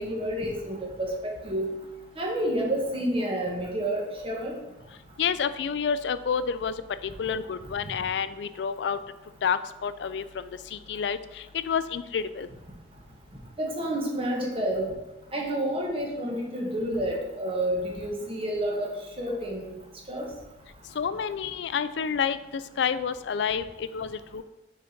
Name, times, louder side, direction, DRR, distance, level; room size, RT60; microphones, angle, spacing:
voice 1, 0.0-1.7 2.2-4.5 13.6-14.9 15.3-19.7 20.1-20.3, right 1 dB, 30° right, -1 dB, 1.2 m, -29 dB
voice 2, 5.2-6.7 7.0-9.0 9.4-12.5 21.0-24.4, left 7 dB, 75° left, 13 dB, 0.4 m, -29 dB
6.3 x 4.0 x 4.4 m, 1.0 s
head